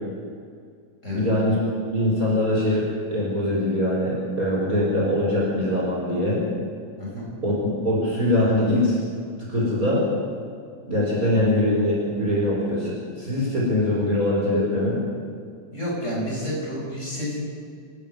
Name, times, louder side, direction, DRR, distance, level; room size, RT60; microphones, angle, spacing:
voice 1, 1.1-1.6 1.9-6.4 7.4-9.0 9.5-10.0 10.9-15.0, left 1 dB, 25° right, -4 dB, 5.4 m, -22 dB
voice 2, 7.0-7.3 15.7-17.4, equal, 20° left, -4 dB, 7.2 m, -29 dB
27.5 x 12.5 x 9.6 m, 2.2 s
omnidirectional pair, 3.5 m